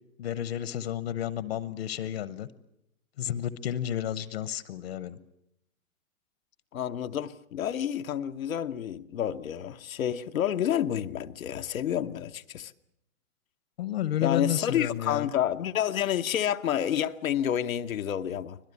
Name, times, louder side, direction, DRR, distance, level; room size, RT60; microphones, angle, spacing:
voice 1, 0.2-2.5 3.2-5.2 13.8-15.3, left 11 dB, 50° left, 1.0 m, -31 dB
voice 2, 6.7-12.7 14.2-18.6, left 10 dB, 85° left, 1.1 m, -29 dB
25.0 x 17.5 x 8.3 m
hypercardioid pair, 165°, 40 cm